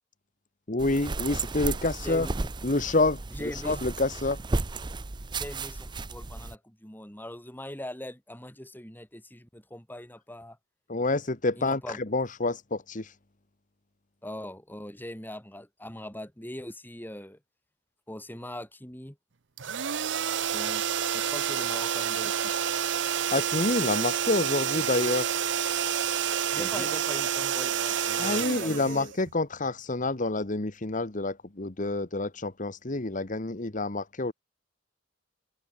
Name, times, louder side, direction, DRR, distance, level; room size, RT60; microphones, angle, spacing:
voice 1, 0.7-2.3 2.6-3.2 3.5-4.4 10.9-13.1 23.3-25.3 26.6-26.7 28.2-34.3, left 2 dB, 45° left, 1.4 m, -28 dB
sound 1, 0.8-6.5, right 3 dB, 25° right, 0.6 m, -34 dB
voice 2, 2.0-2.5 3.3-3.8 5.3-10.6 11.6-12.0 14.2-17.4 18.1-19.2 20.5-20.8 21.1-22.5 26.5-29.1, left 1 dB, 10° left, 6.7 m, -41 dB
sound 2, 19.6-29.5, right 8 dB, 70° right, 0.8 m, -29 dB
head